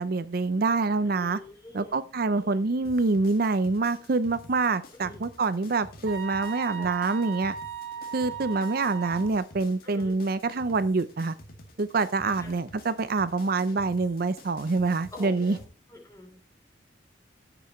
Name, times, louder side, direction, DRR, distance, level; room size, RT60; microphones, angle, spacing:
voice 1, 0.0-1.4 1.7-7.5 8.1-11.3 11.8-15.6, right 3 dB, 50° right, 14 dB, 0.5 m, -26 dB
voice 2, 1.0-2.0 2.3-2.7 5.0-5.2 6.7-6.9 9.8-10.2 12.4-12.6 15.1-16.4, left 2 dB, 15° left, 2 dB, 3.0 m, -45 dB
sound 1, 2.8-15.6, left 1 dB, 50° left, 2.2 m, -49 dB
sound 2, 6.1-9.3, right 8 dB, 85° right, 3.1 m, -37 dB
15.5 x 6.9 x 3.1 m, 0.32 s
head